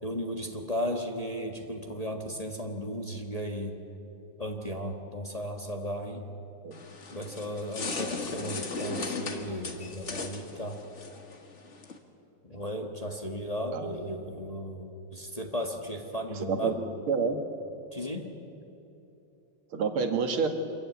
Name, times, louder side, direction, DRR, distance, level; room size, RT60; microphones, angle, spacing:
voice 1, 0.0-3.8 4.4-6.2 7.1-10.8 12.4-16.7 17.9-18.3, equal, 20° left, 2 dB, 1.4 m, -35 dB
sound 1, 6.7-12.0, left 3 dB, 35° left, 1.8 m, -37 dB
voice 2, 16.5-17.4 19.7-20.5, right 5 dB, 85° right, 6 dB, 2.5 m, -28 dB
26.0 x 14.5 x 9.5 m, 2.9 s
omnidirectional pair, 2.3 m